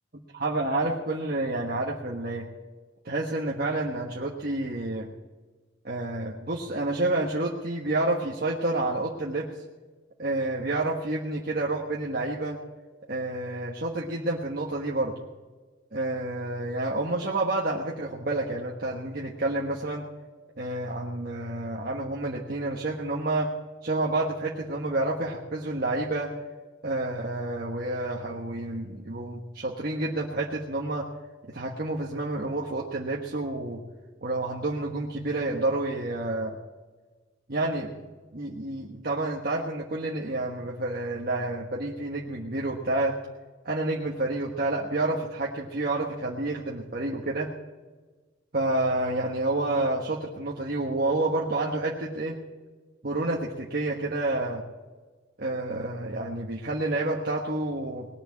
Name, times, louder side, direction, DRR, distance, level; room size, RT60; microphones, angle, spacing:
voice 1, 0.4-2.5 3.0-5.1 5.8-9.5 10.2-12.6 13.1-15.1 15.9-20.0 20.6-23.5 23.8-26.3 26.8-31.1 31.5-33.8 34.2-36.6 37.5-38.0 38.3-43.2 43.6-47.5 48.5-52.4 53.0-54.6 55.4-58.1, right 2 dB, 50° right, -2 dB, 1.4 m, -29 dB
20.0 x 6.8 x 8.5 m, 1.3 s
head